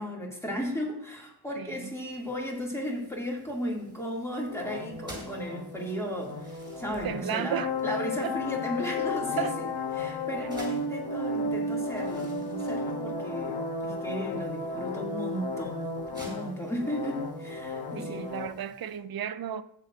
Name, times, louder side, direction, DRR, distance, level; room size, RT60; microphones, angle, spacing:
voice 1, 0.0-18.3, equal, 5° left, 2.1 m, -35 dB
voice 2, 1.6-1.9 7.0-7.7 8.2-8.3 9.4-9.6 18.0-19.6, right 9 dB, 65° right, 0.5 m, -33 dB
sound 1, 2.1-19.0, right 1 dB, 10° right, 4.1 m, -54 dB
sound 2, 4.5-18.5, left 2 dB, 75° left, 1.3 m, -34 dB
13.5 x 8.8 x 2.5 m
wide cardioid pair, 140°, 40 cm